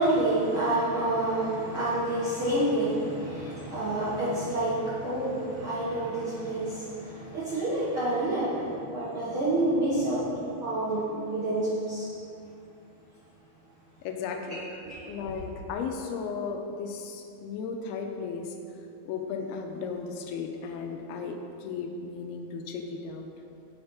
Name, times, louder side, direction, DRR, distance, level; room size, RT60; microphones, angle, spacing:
voice 1, 0.0-10.3 10.6-12.1 14.5-14.6 14.8-14.9, right 1 dB, 50° right, -9 dB, 1.6 m, -28 dB
voice 2, 14.0-14.6 15.1-18.5 19.1-23.3, left 5 dB, 85° left, 3 dB, 2.6 m, -35 dB
8.7 x 7.9 x 5.8 m, 2.6 s
omnidirectional pair, 4.7 m